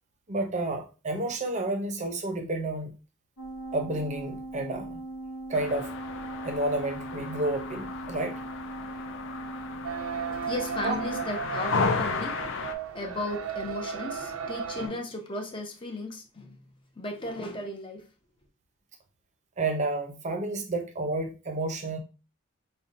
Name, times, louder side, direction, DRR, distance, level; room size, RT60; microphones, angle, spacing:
voice 1, 0.3-2.9 3.7-5.0 5.5-5.9 6.4-8.4 9.9-10.3 10.8-11.0 19.6-22.0, right 2 dB, 35° right, 0.6 m, -31 dB
sound 1, 3.4-11.3, right 2 dB, 80° left, 0.9 m, -39 dB
sound 2, 5.5-12.7, left 5 dB, 60° left, 0.4 m, -34 dB
sound 3, 9.8-14.9, right 7 dB, 85° right, 0.4 m, -35 dB
voice 2, 10.4-12.4 12.9-16.6 17.0-18.0, left 2 dB, 25° left, 0.7 m, -35 dB
5.3 x 2.2 x 2.5 m
head